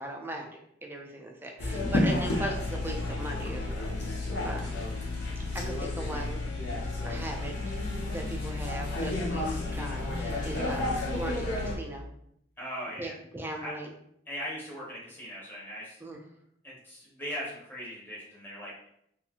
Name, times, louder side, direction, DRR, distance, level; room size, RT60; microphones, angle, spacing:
voice 1, 0.0-4.7 5.4-6.5 7.0-7.5 8.1-12.1 13.0-13.9 16.0-16.2, right 1 dB, 10° right, 1 dB, 0.4 m, -39 dB
sound 1, 1.6-11.7, left 2 dB, 60° left, 0.6 m, -31 dB
voice 2, 12.6-13.1 13.6-13.7 14.3-16.0 16.6-18.7, equal, 10° left, -7 dB, 0.7 m, -39 dB
2.6 x 2.3 x 2.7 m, 0.72 s
head